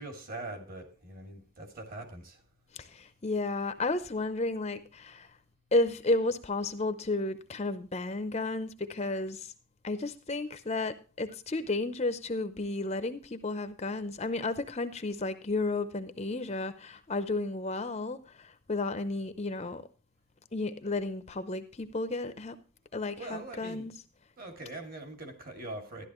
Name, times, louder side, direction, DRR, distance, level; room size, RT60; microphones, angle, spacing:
voice 1, 0.0-2.4 23.1-23.9 24.4-26.1, right 2 dB, 40° right, 2.4 m, -42 dB
voice 2, 2.7-5.3 5.7-9.5 9.8-19.8 20.5-22.6 22.9-23.9, left 2 dB, 30° left, 0.6 m, -32 dB
12.5 x 11.5 x 3.0 m
head